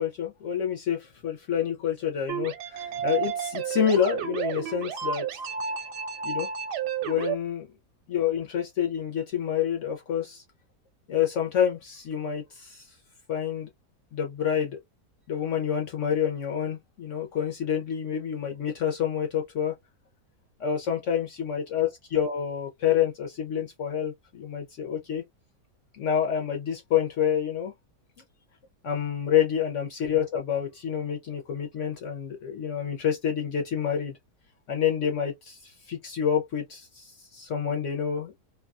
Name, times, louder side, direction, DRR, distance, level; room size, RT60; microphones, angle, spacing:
voice 1, 0.0-5.3 6.2-6.5 7.0-7.7 8.1-10.4 11.1-12.9 13.3-13.7 14.1-14.8 15.3-19.7 20.6-25.2 25.9-27.7 28.8-34.1 34.7-38.4, left 8 dB, 60° left, 0.8 m, -28 dB
sound 1, 2.3-7.3, right 7 dB, 90° right, 1.2 m, -31 dB
2.6 x 2.2 x 2.4 m
omnidirectional pair, 1.7 m